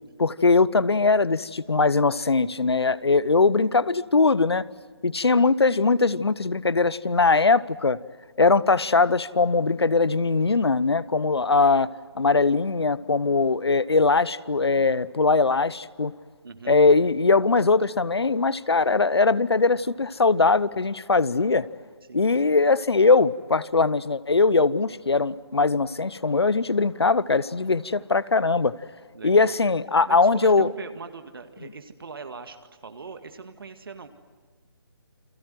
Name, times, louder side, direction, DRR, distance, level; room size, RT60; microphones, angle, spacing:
voice 1, 0.2-4.7 5.0-8.0 8.4-11.9 12.1-16.1 16.7-21.7 22.1-28.7 29.2-30.7, left 4 dB, 80° left, 19 dB, 1.0 m, -21 dB
voice 2, 16.4-16.8 22.1-22.3 29.1-29.5 30.1-34.1, right 4 dB, 60° right, 7 dB, 2.0 m, -40 dB
29.5 x 24.0 x 7.8 m, 1.4 s
figure-of-eight pair, 150°, 13 cm